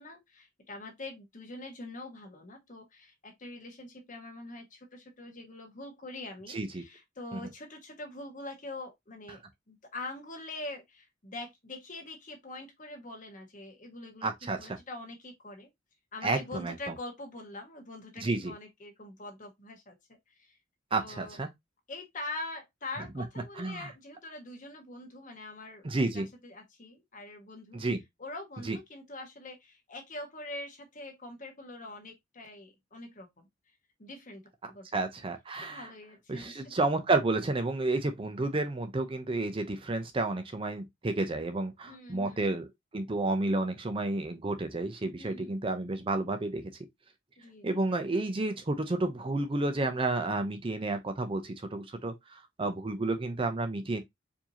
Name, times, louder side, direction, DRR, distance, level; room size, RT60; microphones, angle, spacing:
voice 1, 0.0-9.4 9.7-14.3 14.6-15.7 16.1-20.6 20.9-21.4 21.9-25.9 26.1-27.8 28.2-33.5 34.0-34.9 35.6-36.8 41.8-42.5 45.2-45.5 47.4-47.7, left 2 dB, 45° left, 1.3 m, -44 dB
voice 2, 6.5-6.8 7.3-7.4 14.2-14.6 16.2-16.7 18.2-18.5 20.9-21.5 23.2-23.3 23.6-23.9 25.8-26.3 27.7-28.0 28.6-28.8 34.6-35.9 36.3-46.6 47.6-54.0, right 2 dB, 30° right, 0.5 m, -31 dB
4.7 x 2.7 x 2.8 m
head